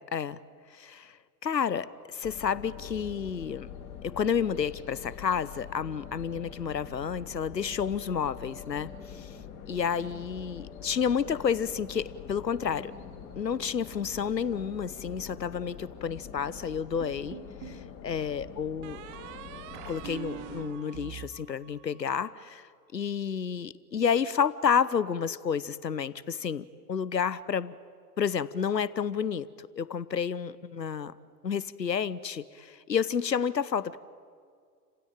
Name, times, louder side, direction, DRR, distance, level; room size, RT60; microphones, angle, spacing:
voice 1, 0.7-1.2 1.4-3.7 4.0-9.3 9.7-12.9 13.3-17.4 17.6-19.0 19.8-27.7 28.2-31.1 31.4-34.0, left 7 dB, 85° left, 19 dB, 0.9 m, -30 dB
sound 1, 2.2-20.6, left 7 dB, 40° left, 6.3 m, -45 dB
sound 2, 17.0-17.8 18.8-22.2, right 11 dB, 45° right, 2.1 m, -43 dB
29.5 x 16.5 x 9.1 m, 2.2 s
figure-of-eight pair, 95°, 49 cm